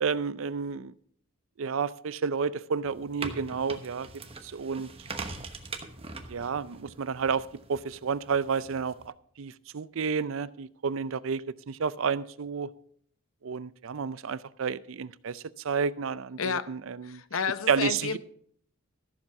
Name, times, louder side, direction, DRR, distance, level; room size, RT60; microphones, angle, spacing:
voice 1, 0.0-0.9 1.6-4.1 4.4-4.9 6.3-7.4 7.7-9.0 9.4-12.7 13.4-17.2 17.7-18.2, right 6 dB, 65° right, 0.5 m, -30 dB
sound 1, 2.8-9.1, right 3 dB, 25° right, 1.1 m, -42 dB
voice 2, 16.4-16.7 17.0-18.2, left 6 dB, 70° left, 0.7 m, -31 dB
14.0 x 7.3 x 5.8 m
head